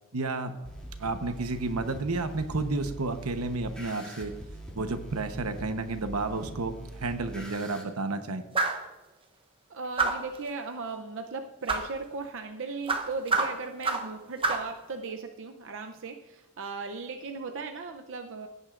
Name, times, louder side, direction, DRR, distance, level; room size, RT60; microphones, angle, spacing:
voice 1, 0.1-0.5 1.0-4.3 4.7-8.4, right 3 dB, 90° right, 8 dB, 1.0 m, -31 dB
sound 1, 0.6-7.8, right 1 dB, 5° left, 2.4 m, -43 dB
sound 2, 8.5-8.9 10.0-10.4 11.7-11.9 12.9-14.1 14.4-14.7, right 3 dB, 25° right, 0.8 m, -27 dB
voice 2, 9.7-18.5, right 4 dB, 60° right, 5 dB, 0.6 m, -37 dB
16.5 x 9.6 x 2.5 m, 1.0 s
head